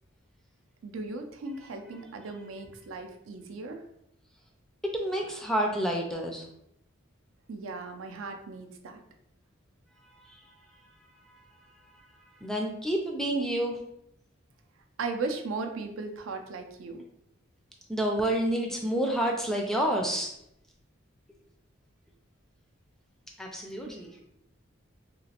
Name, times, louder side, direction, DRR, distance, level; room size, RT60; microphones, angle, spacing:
voice 1, 0.8-3.8 7.5-9.0 15.0-17.0, right 3 dB, 80° right, 5 dB, 0.4 m, -37 dB
voice 2, 4.9-6.4 12.4-13.8 17.9-20.3 23.4-24.1, right 1 dB, ahead, 0 dB, 0.3 m, -29 dB
3.0 x 2.5 x 2.8 m, 0.78 s
head